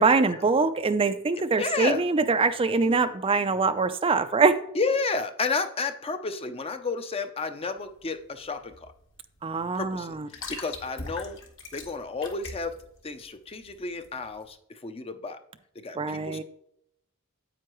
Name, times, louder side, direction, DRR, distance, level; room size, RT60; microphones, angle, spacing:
voice 1, 0.0-4.6 9.4-10.3 16.0-16.4, right 4 dB, 25° right, 0.4 m, -23 dB
voice 2, 1.6-2.0 2.9-3.0 4.7-8.9 9.7-10.2 10.5-11.4 11.7-12.7 13.0-14.6 14.8-15.4 15.8-16.4, left 4 dB, 25° left, 0.6 m, -31 dB
sound 1, 7.8-14.5, left 3 dB, 60° left, 1.7 m, -43 dB
9.2 x 8.5 x 3.0 m
head